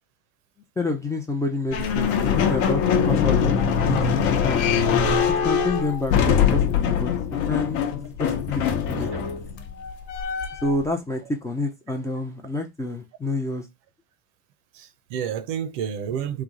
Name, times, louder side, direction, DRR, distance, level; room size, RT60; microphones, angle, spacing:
voice 1, 0.8-4.0 4.3-4.7 5.4-7.8 8.2-9.1 10.6-13.7, left 2 dB, 10° left, 0.4 m, -28 dB
sound 1, 1.7-10.8, left 7 dB, 55° left, 0.9 m, -22 dB
voice 2, 8.9-9.3 14.7-16.4, right 8 dB, 60° right, 0.7 m, -30 dB
3.3 x 2.0 x 3.7 m
supercardioid pair, 105°, 42 cm